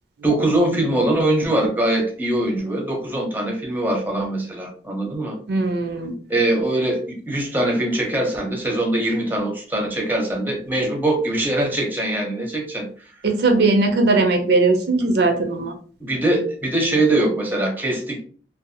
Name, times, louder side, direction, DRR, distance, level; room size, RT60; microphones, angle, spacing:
voice 1, 0.2-5.4 6.3-12.9 16.0-18.2, right 1 dB, 10° right, 1 dB, 0.6 m, -22 dB
voice 2, 5.5-6.1 13.2-15.7, right 3 dB, 65° right, 5 dB, 0.4 m, -19 dB
2.5 x 2.2 x 2.6 m, 0.42 s
head